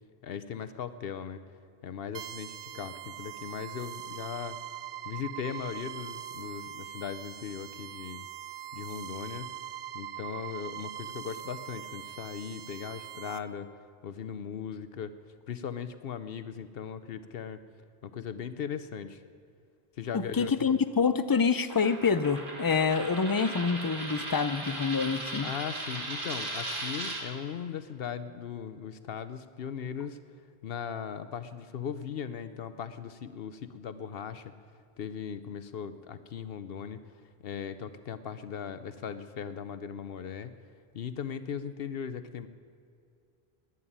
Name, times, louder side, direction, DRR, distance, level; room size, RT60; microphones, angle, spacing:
voice 1, 0.2-1.4 1.8-4.6 5.0-8.3 8.7-9.5 9.9-13.7 14.0-15.1 15.5-17.6 18.0-19.2 20.0-20.8 25.4-30.2 30.6-34.5 35.0-37.0 37.4-40.5 40.9-42.5, left 7 dB, 65° left, 12 dB, 0.8 m, -38 dB
sound 1, 2.1-13.4, right 11 dB, 80° right, 1.0 m, -42 dB
voice 2, 20.1-25.5, left 5 dB, 35° left, 12 dB, 0.4 m, -27 dB
Coin (dropping), 21.7-27.2, right 1 dB, 55° right, 2.5 m, -37 dB
11.0 x 10.0 x 10.0 m, 2.3 s
omnidirectional pair, 1.1 m